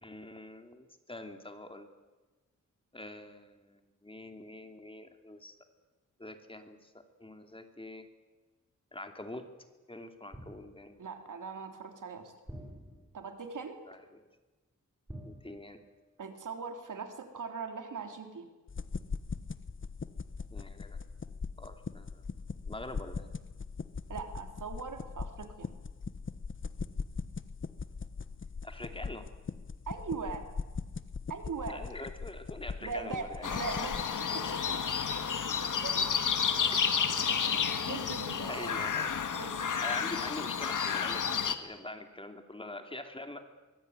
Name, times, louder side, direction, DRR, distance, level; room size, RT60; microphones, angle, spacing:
voice 1, 0.0-1.9 2.9-5.5 6.2-6.9 7.2-8.1 8.9-9.4 9.9-11.0 13.9-14.2 15.2-15.8 20.5-21.0 21.6-22.2 22.6-23.3 28.6-29.3 31.7-33.9 38.5-39.1 39.8-43.4, left 1 dB, 15° left, 6 dB, 2.8 m, -44 dB
sound 1, 10.3-11.1 12.5-13.5 15.1-16.2 16.5-16.7, right 1 dB, 10° right, 7.7 m, -49 dB
voice 2, 11.0-12.3 13.1-13.8 16.2-18.5 24.1-25.7 29.9-30.5 31.3-31.8 32.8-34.0 34.3-38.8 39.4-39.8, right 5 dB, 75° right, 5 dB, 3.6 m, -41 dB
sound 2, 18.7-34.0, left 5 dB, 40° left, 1.2 m, -40 dB
sound 3, 33.4-41.5, left 6 dB, 75° left, 1.9 m, -31 dB
23.5 x 21.5 x 9.7 m, 1.2 s
wide cardioid pair, 100°, 31 cm